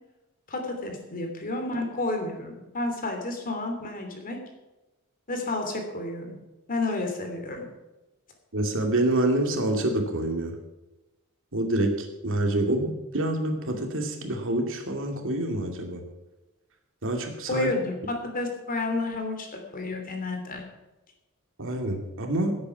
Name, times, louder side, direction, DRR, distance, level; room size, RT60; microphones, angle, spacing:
voice 1, 0.5-4.4 5.3-6.4 6.7-7.7 17.5-20.6, left 2 dB, 40° left, 4 dB, 3.0 m, -31 dB
voice 2, 8.5-10.6 11.5-16.0 17.0-17.7 21.6-22.5, right 1 dB, 60° right, 4 dB, 2.5 m, -27 dB
17.0 x 8.6 x 6.0 m, 1.0 s
head